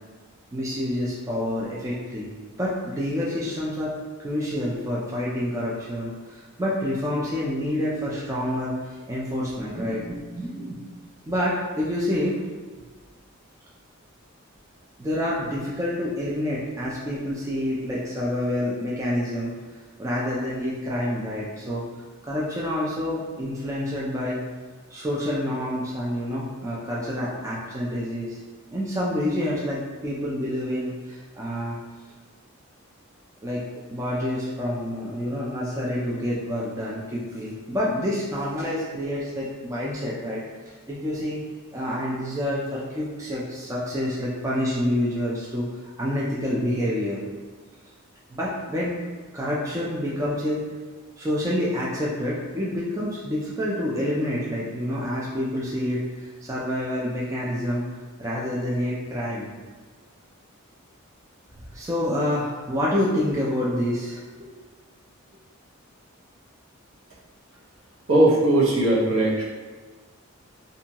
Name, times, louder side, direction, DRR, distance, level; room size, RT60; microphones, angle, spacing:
voice 1, 0.5-2.3 2.6-3.9 4.2-10.8 11.3-12.4 15.0-19.5 20.0-21.8 22.2-24.4 24.9-28.4 28.7-31.8 33.4-33.6 33.9-40.4 40.9-41.4 41.7-47.2 48.3-48.9 49.3-50.6 51.2-57.8 58.2-59.5 61.7-64.5, left 1 dB, 15° right, -6 dB, 0.3 m, -28 dB
voice 2, 68.1-69.4, right 1 dB, 65° right, -5 dB, 0.7 m, -19 dB
2.6 x 2.2 x 2.8 m, 1.4 s
head